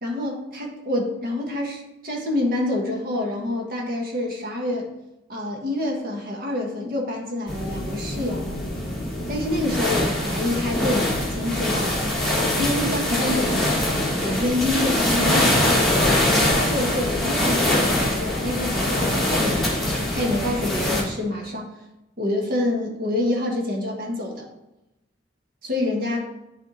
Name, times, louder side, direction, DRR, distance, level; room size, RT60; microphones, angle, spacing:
voice 1, 0.0-4.9 5.3-8.6 9.3-12.1 12.6-15.8 16.3-21.7 22.2-24.5 25.6-26.3, left 1 dB, 50° right, 0 dB, 1.4 m, -27 dB
sound 1, 7.5-21.0, left 1 dB, ahead, 1.3 m, -23 dB
9.6 x 3.6 x 4.1 m, 0.91 s
head